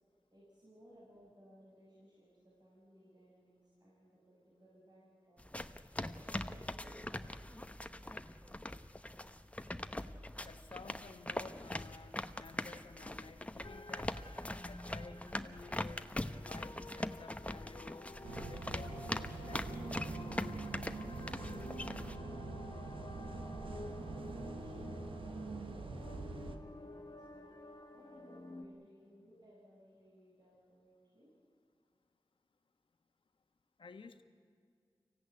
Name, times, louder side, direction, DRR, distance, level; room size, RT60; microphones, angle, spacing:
voice 1, 0.3-7.6 23.6-31.3, equal, 55° right, -7 dB, 7.0 m, -61 dB
sound 1, 5.4-22.2, left 1 dB, 15° left, 0.9 m, -42 dB
voice 2, 10.5-14.2 14.6-16.0 16.4-18.1 18.5-20.2 33.8-34.2, left 4 dB, 75° left, 8 dB, 1.3 m, -54 dB
sound 2, 13.6-28.7, left 2 dB, 60° left, 1.7 m, -51 dB
sound 3, 18.2-26.6, right 3 dB, 85° right, 1.4 m, -44 dB
25.0 x 16.0 x 9.4 m, 2.2 s
wide cardioid pair, 55°, 9 cm